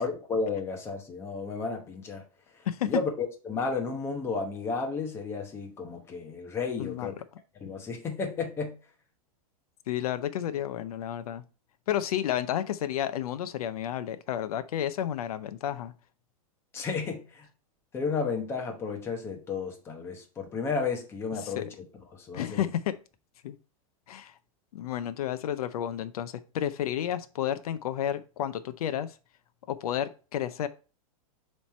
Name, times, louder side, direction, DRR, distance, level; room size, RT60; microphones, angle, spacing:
voice 1, 0.0-2.2 2.9-7.1 7.6-8.7 16.7-17.5 17.9-21.7 22.2-22.6, left 4 dB, 15° left, 0.9 m, -32 dB
voice 2, 2.7-3.0 6.8-7.1 9.9-11.4 11.9-15.9 21.4-21.7 22.3-23.0 23.4-23.6 24.1-24.3 24.7-29.1 29.7-30.7, left 11 dB, 80° left, 0.6 m, -31 dB
7.2 x 3.3 x 4.2 m
supercardioid pair, 165°, 19 cm